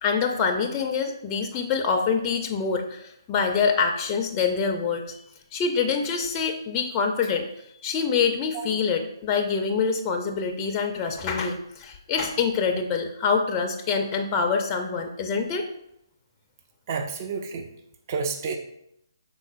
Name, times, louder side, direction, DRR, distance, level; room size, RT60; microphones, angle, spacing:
voice 1, 0.0-5.2 5.5-7.5 7.8-15.7, left 5 dB, 20° left, 3 dB, 0.4 m, -25 dB
voice 2, 16.9-17.7 18.1-18.6, right 5 dB, 40° right, 5 dB, 0.4 m, -29 dB
5.3 x 3.8 x 2.4 m, 0.77 s
figure-of-eight pair, 145°, 2 cm